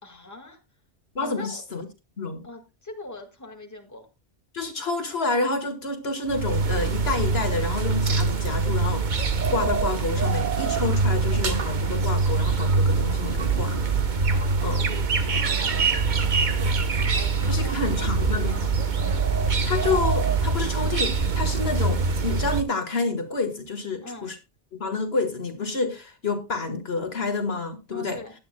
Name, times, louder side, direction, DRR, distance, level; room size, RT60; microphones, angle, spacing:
voice 1, 0.0-0.6 1.2-1.6 2.4-4.1 14.3-15.8 16.1-18.8 24.0-24.3 27.9-28.3, left 2 dB, 15° left, 1.8 m, -42 dB
voice 2, 1.1-1.9 2.2-2.4 4.5-13.8 14.1-14.2 14.6-14.8 17.5-18.5 19.6-24.4 24.7-28.2, left 3 dB, 60° left, 1.8 m, -29 dB
sound 1, 6.3-22.6, right 4 dB, 45° right, 1.1 m, -24 dB
17.0 x 11.0 x 2.2 m
omnidirectional pair, 1.2 m